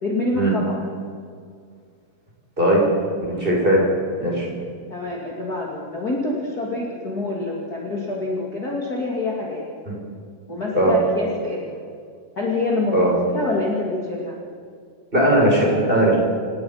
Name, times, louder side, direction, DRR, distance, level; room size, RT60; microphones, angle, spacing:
voice 1, 0.0-0.8 4.9-9.6 10.5-11.8 12.4-14.4, left 2 dB, 30° left, -3 dB, 2.9 m, -26 dB
voice 2, 3.3-3.9 4.2-4.5 10.7-10.9 12.9-13.1 15.1-16.2, right 1 dB, 15° right, -3 dB, 6.3 m, -18 dB
28.0 x 18.5 x 5.8 m, 2.2 s
omnidirectional pair, 3.7 m